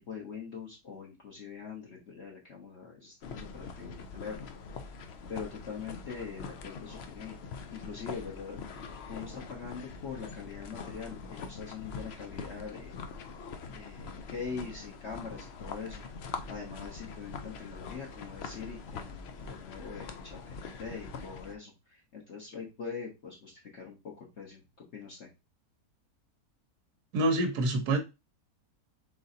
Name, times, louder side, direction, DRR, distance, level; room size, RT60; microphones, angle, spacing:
voice 1, 0.0-4.6 5.3-7.4 7.7-8.6 9.1-12.9 13.7-16.0 16.5-24.6 24.9-25.3, left 6 dB, 50° left, -3 dB, 1.1 m, -43 dB
sound 1, 3.2-21.5, left 5 dB, 70° left, 0.6 m, -43 dB
voice 2, 27.1-28.0, right 2 dB, 80° right, 5 dB, 1.3 m, -26 dB
4.1 x 3.8 x 2.6 m, 0.25 s
omnidirectional pair, 1.7 m